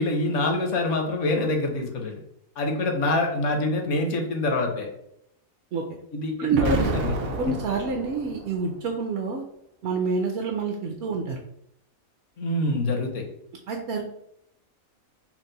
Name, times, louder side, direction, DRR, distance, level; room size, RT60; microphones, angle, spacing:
voice 1, 0.0-2.1 2.6-4.9 6.1-7.1 12.4-13.3, left 2 dB, 65° left, 3 dB, 1.1 m, -25 dB
voice 2, 6.4-6.9 7.4-9.4 9.8-11.4 13.7-14.0, right 4 dB, 65° right, 1 dB, 0.7 m, -27 dB
Explosion, 6.5-8.6, right 3 dB, 80° right, 1.0 m, -29 dB
4.5 x 2.0 x 3.9 m, 0.75 s
omnidirectional pair, 1.4 m